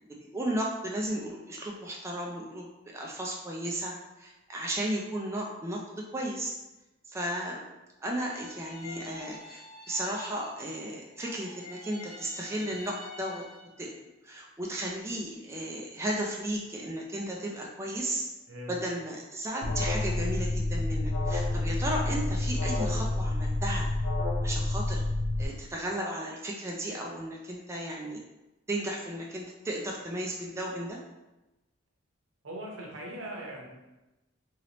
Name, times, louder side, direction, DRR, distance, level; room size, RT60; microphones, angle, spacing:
voice 1, 0.2-6.5 7.1-7.7 8.0-13.4 13.8-14.0 14.2-18.2 18.7-23.9 24.4-25.0 25.4-28.2 28.7-31.0, right 1 dB, 15° right, -2 dB, 0.3 m, -34 dB
sound 1, 8.2-10.9 11.1-13.9, left 3 dB, 35° left, 1.4 m, -47 dB
Alarm, 19.6-25.4, left 2 dB, 70° left, 0.5 m, -29 dB
voice 2, 32.4-33.7, right 1 dB, 80° right, -2 dB, 0.8 m, -40 dB
2.9 x 2.9 x 2.9 m, 1.0 s
head